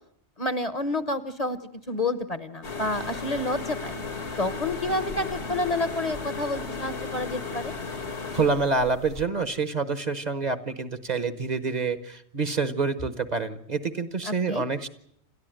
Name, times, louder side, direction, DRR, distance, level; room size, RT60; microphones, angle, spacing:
voice 1, 0.4-1.6 1.9-3.9 4.4-7.7 14.3-14.6, left 2 dB, 35° left, 12 dB, 1.0 m, -29 dB
sound 1, 2.6-9.2, left 4 dB, 80° left, 2.3 m, -35 dB
voice 2, 8.3-14.9, right 4 dB, 40° right, 11 dB, 1.2 m, -27 dB
29.0 x 13.5 x 9.1 m, 0.72 s
omnidirectional pair, 1.1 m